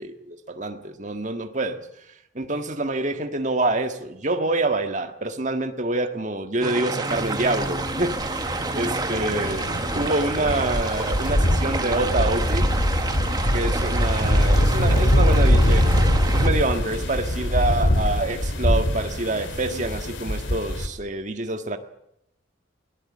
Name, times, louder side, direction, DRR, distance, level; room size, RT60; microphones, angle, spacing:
voice 1, 0.3-1.8 2.3-9.7 9.9-12.7 13.5-15.9 16.3-21.8, right 2 dB, 40° right, 7 dB, 1.7 m, -26 dB
sound 1, 6.6-16.5, right 3 dB, 20° right, 1.5 m, -29 dB
sound 2, 7.2-20.9, equal, 70° left, 2.9 m, -23 dB
22.0 x 19.0 x 8.7 m, 0.78 s
head